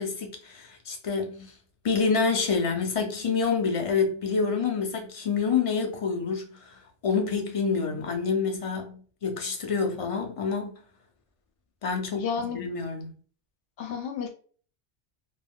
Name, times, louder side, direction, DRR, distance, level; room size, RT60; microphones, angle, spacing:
voice 1, 0.0-1.5 1.8-10.8 11.8-12.3 12.5-13.2, left 5 dB, 50° left, 0.4 m, -27 dB
voice 2, 12.1-12.6 13.8-14.3, left 6 dB, 75° left, 0.9 m, -31 dB
2.3 x 2.3 x 3.4 m
omnidirectional pair, 1.2 m